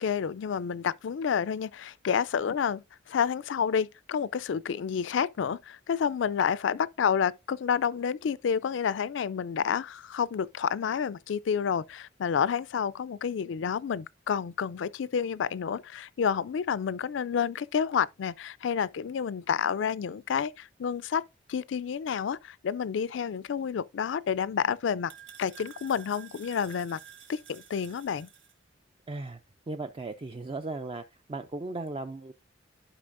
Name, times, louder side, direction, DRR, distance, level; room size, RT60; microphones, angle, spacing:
voice 1, 0.0-21.2 21.5-25.1 25.4-27.0 27.3-28.3, left 7 dB, 70° left, 0.4 m, -29 dB
sound 1, 24.0-28.5, right 8 dB, 65° right, 1.4 m, -51 dB
voice 2, 29.1-29.4 29.7-31.0 31.3-32.3, right 2 dB, 30° right, 0.4 m, -36 dB
12.0 x 5.2 x 2.5 m
head